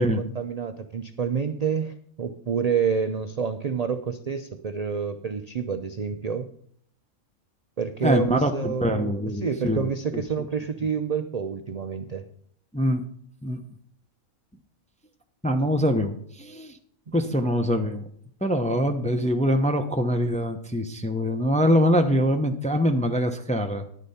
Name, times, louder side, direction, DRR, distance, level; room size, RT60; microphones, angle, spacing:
voice 1, 0.0-6.5 7.8-12.2 15.6-15.7 17.1-17.2, right 6 dB, 55° right, 8 dB, 0.4 m, -28 dB
voice 2, 8.0-9.9 10.1-10.5 12.7-13.0 13.4-13.6 15.4-16.8 17.1-18.1 18.4-23.9, equal, 10° left, 5 dB, 0.5 m, -24 dB
11.0 x 10.0 x 4.3 m, 0.63 s
omnidirectional pair, 1.5 m